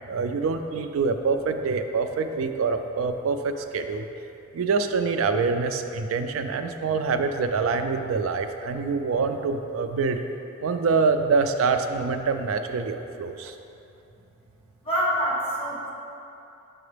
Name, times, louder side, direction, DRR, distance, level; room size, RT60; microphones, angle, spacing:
voice 1, 0.1-4.0 4.5-10.2 10.6-13.5, right 4 dB, 90° right, 7 dB, 0.4 m, -25 dB
voice 2, 14.8-15.9, equal, 30° left, -6 dB, 1.4 m, -26 dB
7.1 x 4.7 x 3.3 m, 2.9 s
head